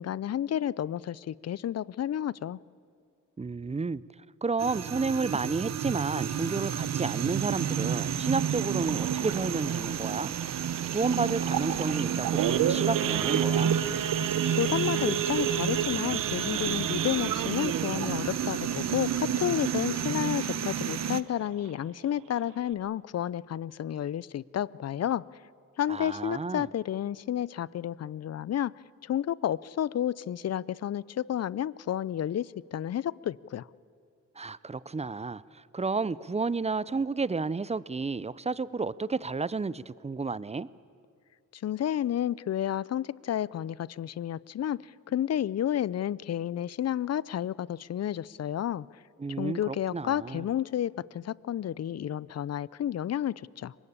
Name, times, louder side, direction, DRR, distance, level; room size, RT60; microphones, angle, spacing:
voice 1, 0.0-2.6 14.5-25.2 25.8-28.7 29.0-33.7 41.5-48.9 49.4-53.7, left 10 dB, 55° left, 22 dB, 0.5 m, -31 dB
voice 2, 3.4-4.0 4.4-10.3 10.9-13.7 25.9-26.7 34.4-40.7 49.2-50.5, right 4 dB, 20° right, 19 dB, 0.6 m, -31 dB
sound 1, 4.6-21.2, right 8 dB, 55° right, 0.8 m, -31 dB
Idling / Accelerating revving vroom / Sawing, 8.8-19.9 20.3-20.5 20.8-20.9 21.3-21.6 22.1-22.2 22.4-22.7, right 10 dB, 90° right, 0.9 m, -32 dB
24.0 x 20.0 x 8.7 m, 2.4 s
cardioid pair, 70°, 31 cm